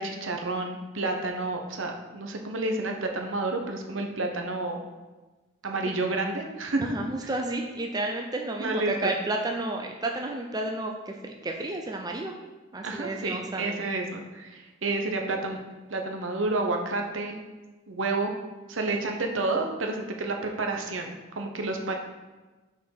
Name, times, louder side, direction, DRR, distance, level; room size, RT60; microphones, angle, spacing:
voice 1, 0.0-4.8 5.6-6.8 8.6-9.1 12.8-15.6 15.9-17.3 17.9-18.3 18.7-21.9, right 2 dB, 70° right, 3 dB, 1.0 m, -30 dB
voice 2, 6.8-12.3 12.7-13.8, right 2 dB, 20° right, 2 dB, 0.5 m, -31 dB
6.1 x 4.6 x 5.8 m, 1.2 s
head